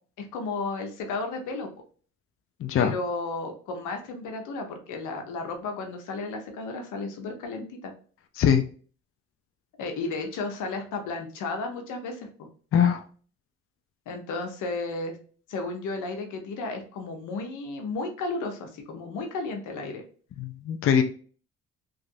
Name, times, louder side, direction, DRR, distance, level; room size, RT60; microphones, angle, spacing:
voice 1, 0.2-1.7 2.8-7.9 9.8-12.5 14.1-15.2 15.5-20.0, left 3 dB, 90° left, 4 dB, 0.8 m, -33 dB
voice 2, 2.6-2.9 8.4-8.6 12.7-13.0 20.4-21.0, left 8 dB, 45° left, 7 dB, 0.4 m, -22 dB
3.1 x 2.5 x 2.5 m, 0.41 s
cardioid pair, 90°, 30 cm